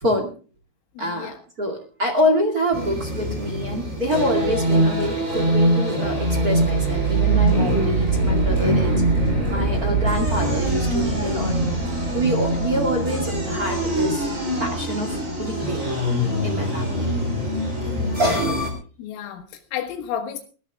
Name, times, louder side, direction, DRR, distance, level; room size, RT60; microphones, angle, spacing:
voice 1, 0.0-0.3 1.0-8.9 9.2-11.5 12.1-14.3 14.6-15.8 16.4-17.1 18.2-18.6, equal, 40° right, 2 dB, 1.3 m, -26 dB
voice 2, 1.0-1.4 5.3-5.5 17.8-18.5 19.0-20.4, left 9 dB, 90° left, 4 dB, 4.4 m, -33 dB
sound 1, 2.7-18.7, right 1 dB, 15° right, 4.1 m, -22 dB
21.0 x 13.5 x 3.6 m, 0.37 s
omnidirectional pair, 5.8 m